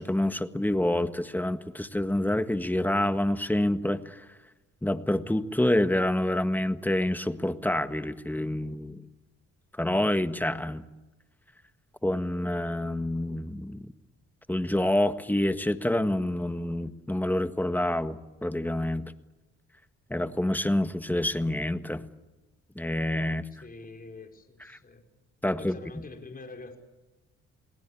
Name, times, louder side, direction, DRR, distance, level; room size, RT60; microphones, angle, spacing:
voice 1, 0.0-4.3 4.8-9.0 9.8-10.8 12.0-13.9 14.5-19.1 20.1-22.1 22.8-23.5 25.4-25.8, left 1 dB, 5° left, 10 dB, 1.6 m, -27 dB
voice 2, 23.5-25.0 25.4-26.8, left 3 dB, 30° left, 4 dB, 5.2 m, -45 dB
29.0 x 19.5 x 8.7 m, 1.1 s
cardioid pair, 90°, 30 cm